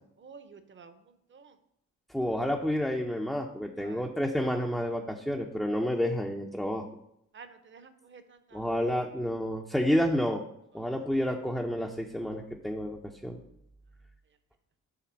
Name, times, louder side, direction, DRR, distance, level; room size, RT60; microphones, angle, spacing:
voice 1, 0.2-1.0 1.3-1.5 3.8-4.2 7.3-8.6 10.8-10.9, right 5 dB, 35° right, 10 dB, 0.7 m, -51 dB
voice 2, 2.1-6.9 8.5-10.4 10.7-13.4, equal, ahead, 0 dB, 0.4 m, -30 dB
5.8 x 3.8 x 6.1 m, 0.76 s
cardioid pair, 100°, 34 cm